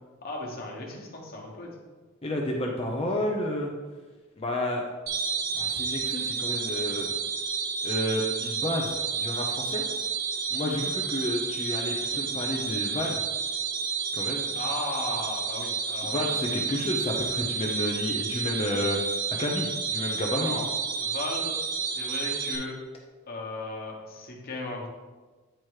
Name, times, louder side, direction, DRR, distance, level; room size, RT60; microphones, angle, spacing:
voice 1, 0.2-1.7 10.6-10.9 14.5-16.2 20.4-20.7 21.0-21.6 21.9-22.8 23.3-24.9, left 2 dB, 50° left, -2 dB, 1.3 m, -36 dB
voice 2, 2.2-3.7 4.4-4.8 5.5-7.1 7.8-9.8 10.5-13.2 14.1-14.5 16.0-19.0 19.3-20.6, left 1 dB, 30° left, -1 dB, 0.6 m, -30 dB
sound 1, 5.1-22.6, right 6 dB, 50° right, 1.1 m, -30 dB
8.9 x 3.0 x 4.7 m, 1.3 s
head